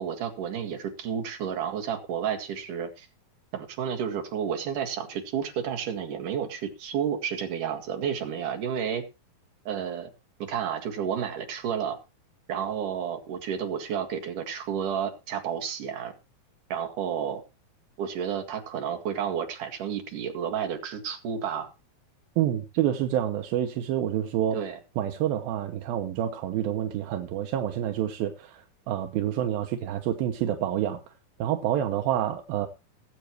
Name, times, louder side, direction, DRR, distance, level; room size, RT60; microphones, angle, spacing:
voice 1, 0.0-3.1 3.5-9.0 9.6-10.1 10.4-12.0 12.5-16.1 16.7-17.4 18.0-21.7 24.5-24.8, right 8 dB, 60° right, 3.4 m, -31 dB
voice 2, 22.4-24.6 25.0-28.6 28.9-31.0 31.4-32.7, right 11 dB, 80° right, 2.8 m, -28 dB
20.5 x 7.8 x 3.0 m
omnidirectional pair, 4.3 m